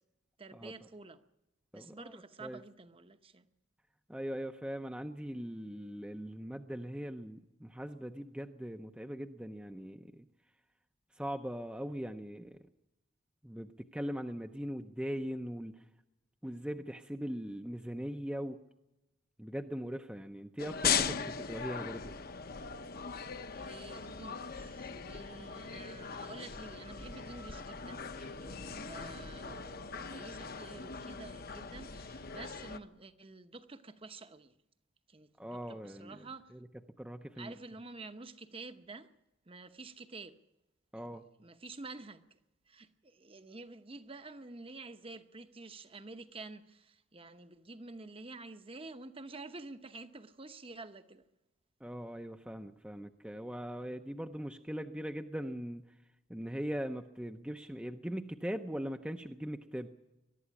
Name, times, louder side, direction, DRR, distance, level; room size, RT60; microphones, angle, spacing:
voice 1, 0.4-1.2 1.7-3.5 23.5-34.5 35.1-36.5 37.3-39.1 39.5-40.4 41.0-42.4 42.7-51.2, right 3 dB, 25° right, 0.9 m, -49 dB
voice 2, 1.7-2.6 4.1-10.3 11.2-12.6 13.4-15.8 16.4-18.6 19.4-22.1 35.4-36.2 36.5-36.6 37.0-37.5 40.9-41.2 51.8-55.8 56.3-59.9, equal, 5° right, 0.6 m, -40 dB
sound 1, 20.6-32.8, left 6 dB, 45° left, 0.9 m, -39 dB
22.5 x 12.0 x 10.0 m
head